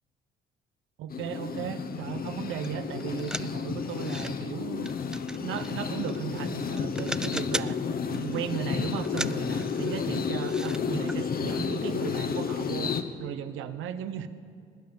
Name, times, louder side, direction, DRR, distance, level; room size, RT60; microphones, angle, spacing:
voice 1, 1.0-4.9 5.4-7.8 8.1-14.3, right 9 dB, 90° right, 11 dB, 0.9 m, -36 dB
sound 1, 1.1-13.0, left 6 dB, 50° left, 1.0 m, -31 dB
sound 2, 2.6-2.7 3.0-4.3 4.8-6.5 6.8-7.8 8.1-8.5 9.0-10.8 11.1-11.2 11.5-11.6, right 1 dB, 5° right, 0.3 m, -38 dB
20.0 x 9.4 x 7.0 m, 2.3 s
cardioid pair, 90°, 20 cm